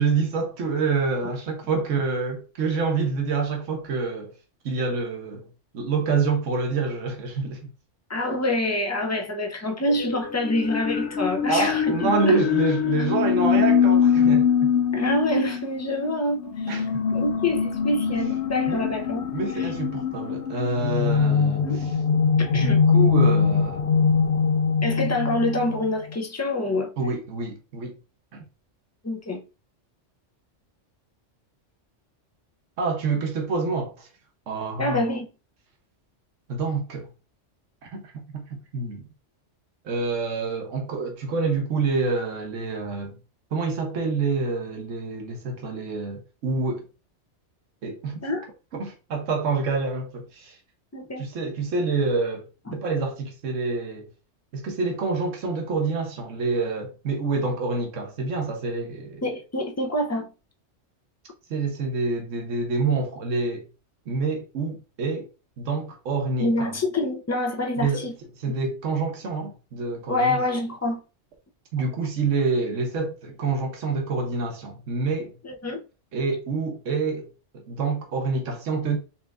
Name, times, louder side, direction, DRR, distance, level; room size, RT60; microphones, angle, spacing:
voice 1, 0.0-4.3 4.6-5.5 5.7-7.7 11.5-14.7 16.7-17.0 18.7-18.8 19.3-21.7 22.5-23.8 27.0-27.9 28.3-28.4 32.8-34.1 34.5-35.0 36.5-37.1 37.8-39.0 39.8-43.1 43.5-46.8 47.8-48.2 48.7-50.6 51.2-52.5 52.7-54.1 54.5-59.2 61.5-63.6 64.1-65.3 65.6-66.7 67.8-68.1 68.4-70.4 71.7-75.4 76.1-77.3 77.5-79.0, right 4 dB, 90° right, 1.2 m, -27 dB
voice 2, 8.1-12.4 14.9-16.8 17.1-19.3 19.5-19.7 21.6-21.8 22.4-22.8 24.8-26.9 29.0-29.4 34.8-35.3 48.2-48.5 50.9-51.2 52.7-52.8 59.2-60.3 66.4-68.1 70.1-71.0 75.4-75.8, left 1 dB, 20° left, 0.4 m, -26 dB
sound 1, 9.9-26.1, left 6 dB, 70° left, 0.8 m, -23 dB
4.3 x 3.4 x 2.4 m
omnidirectional pair, 1.3 m